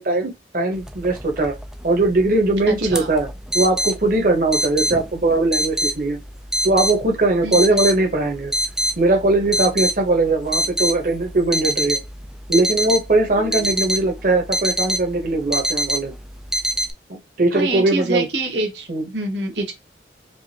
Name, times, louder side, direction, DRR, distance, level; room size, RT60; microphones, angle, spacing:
voice 1, 0.0-1.5 1.8-3.3 3.5-6.2 6.6-8.5 9.0-12.0 12.5-16.1 17.1-18.2 18.9-19.0, right 2 dB, 50° right, 1.0 m, -20 dB
sound 1, 0.8-16.9, equal, 5° right, 0.3 m, -26 dB
voice 2, 2.7-3.1 7.4-7.8 17.5-19.7, right 2 dB, 80° right, 1.3 m, -26 dB
4.6 x 2.5 x 2.8 m
head